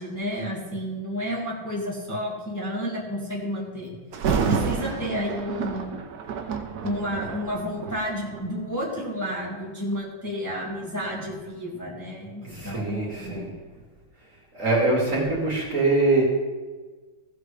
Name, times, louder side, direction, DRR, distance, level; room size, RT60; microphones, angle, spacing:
voice 1, 0.0-3.9 4.4-6.0 6.8-13.4, equal, 10° left, -5 dB, 1.8 m, -31 dB
Thunder, 4.1-9.1 9.8-10.0 10.6-13.4 13.8-13.9, right 6 dB, 60° right, 1.2 m, -30 dB
voice 2, 12.4-13.5 14.5-16.2, right 2 dB, 35° right, -4 dB, 2.5 m, -23 dB
15.5 x 7.7 x 3.3 m, 1.4 s
omnidirectional pair, 2.4 m